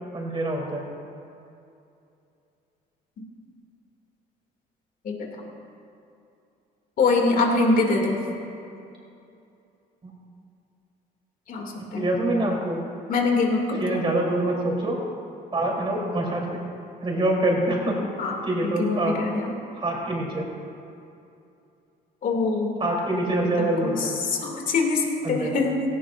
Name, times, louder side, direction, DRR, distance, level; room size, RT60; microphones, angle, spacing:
voice 1, 0.1-0.9 12.0-12.8 13.8-15.0 15.5-16.6 17.0-18.0 18.4-19.1 19.8-20.5 22.8-24.2 25.2-25.6, right 1 dB, 30° right, -2 dB, 3.5 m, -25 dB
voice 2, 7.0-8.2 11.5-12.1 13.1-14.0 18.2-19.5 22.2-22.7 23.6-25.8, left 3 dB, 55° left, 0 dB, 2.6 m, -24 dB
17.5 x 16.0 x 2.6 m, 2.6 s
cardioid pair, 110°, 17 cm